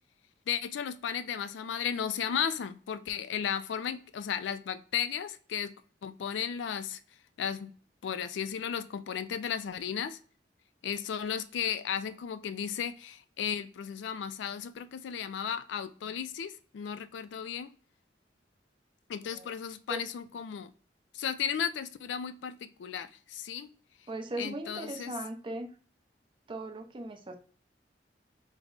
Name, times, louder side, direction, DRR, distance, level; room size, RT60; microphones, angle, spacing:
voice 1, 0.5-5.7 6.0-7.0 7.4-7.7 8.0-10.2 10.8-17.7 19.1-20.7 21.1-23.7 24.4-25.1, left 8 dB, 85° left, 13 dB, 0.3 m, -35 dB
voice 2, 24.1-25.7 26.5-27.3, right 2 dB, 30° right, 4 dB, 0.5 m, -38 dB
3.5 x 2.0 x 3.7 m, 0.42 s
head